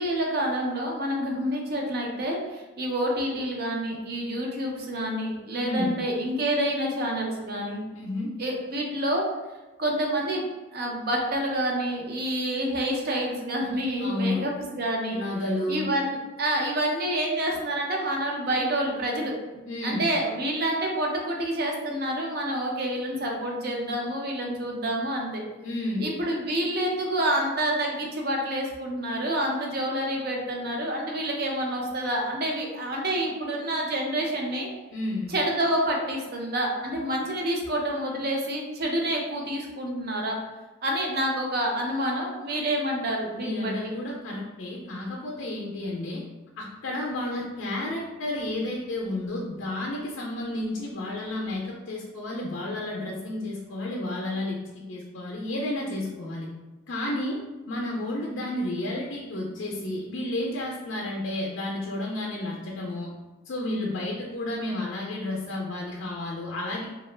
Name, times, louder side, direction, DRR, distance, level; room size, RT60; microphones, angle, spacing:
voice 1, 0.0-7.8 8.4-9.2 9.8-10.5 10.7-15.2 15.7-19.3 19.8-25.4 26.0-34.7 35.3-40.4 40.8-43.8, right 1 dB, 45° right, 0 dB, 0.5 m, -28 dB
voice 2, 5.6-6.0 7.9-8.3 14.0-14.4 15.1-15.9 19.7-20.1 25.6-26.1 34.9-35.3 43.3-46.2 46.6-56.5 56.9-63.1 63.5-66.9, left 1 dB, 60° left, -2 dB, 0.4 m, -31 dB
2.8 x 2.2 x 3.2 m, 1.1 s
head